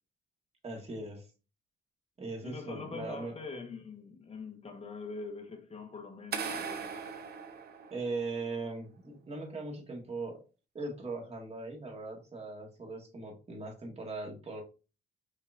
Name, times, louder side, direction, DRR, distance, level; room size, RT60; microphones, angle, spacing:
voice 1, 0.6-1.3 2.2-3.3 7.9-10.4 10.7-14.6, right 3 dB, 30° right, 1.7 m, -39 dB
voice 2, 2.4-7.0, left 4 dB, 30° left, 1.2 m, -43 dB
sound 1, 6.3-8.4, right 6 dB, 50° right, 0.8 m, -39 dB
5.7 x 3.0 x 2.5 m
cardioid pair, 90°, 20 cm